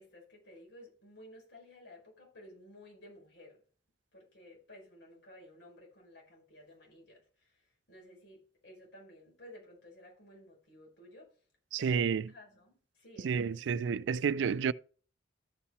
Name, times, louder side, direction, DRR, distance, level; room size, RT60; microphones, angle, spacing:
voice 1, 0.0-3.6 4.1-11.3 11.8-14.2, left 1 dB, 80° left, 5.1 m, -55 dB
voice 2, 11.7-12.3 13.2-14.7, right 6 dB, 85° right, 0.3 m, -30 dB
13.5 x 5.6 x 3.1 m
head